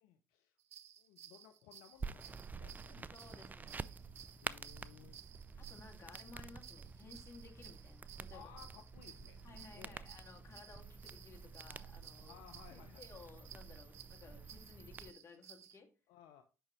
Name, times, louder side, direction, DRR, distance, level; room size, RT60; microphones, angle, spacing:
voice 1, 0.0-0.5 1.0-3.1 4.4-5.2 8.3-9.5 9.7-10.0 12.2-13.0 16.1-16.4, left 10 dB, 70° left, 5 dB, 0.7 m, -59 dB
sound 1, 0.6-15.8, right 10 dB, 85° right, 0.5 m, -58 dB
sound 2, 2.0-15.1, right 4 dB, 20° right, 0.5 m, -49 dB
voice 2, 2.9-4.0 5.6-8.5 9.4-12.4 12.7-15.9, left 4 dB, 35° left, 2 dB, 2.2 m, -57 dB
9.0 x 5.4 x 3.1 m, 0.32 s
hypercardioid pair, 60°, 8 cm